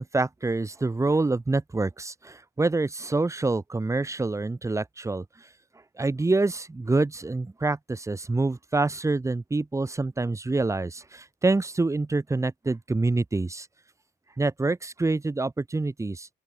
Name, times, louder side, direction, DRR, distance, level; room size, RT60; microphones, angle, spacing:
voice 1, 0.0-5.2 6.0-13.7 14.4-16.3, right 3 dB, 15° right, 1.8 m, -26 dB
open air
cardioid pair, 115°, 18 cm